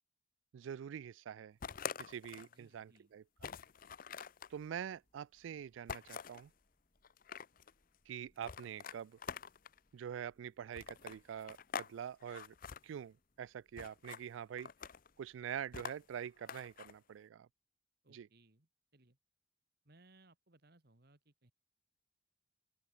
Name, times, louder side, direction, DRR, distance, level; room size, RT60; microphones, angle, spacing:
voice 1, 0.5-1.6 2.0-3.2 4.5-6.5 8.1-9.2 9.9-12.5 12.8-14.7 15.2-17.5 18.1-18.3, right 8 dB, 85° right, 0.3 m, -45 dB
sound 1, 1.6-2.5 3.0-3.1 3.4-4.5 5.9-6.4 7.0-7.7 8.4-9.8 10.7-11.9 12.2-12.8 13.8-14.2 14.6-15.1 15.7-16.9, left 6 dB, 45° left, 0.6 m, -46 dB
voice 2, 2.4-3.1 18.0-19.2 19.8-21.5, right 2 dB, 55° right, 2.0 m, -66 dB
Thunder / Rain, 3.3-17.5, equal, 30° left, 4.8 m, -79 dB
open air
head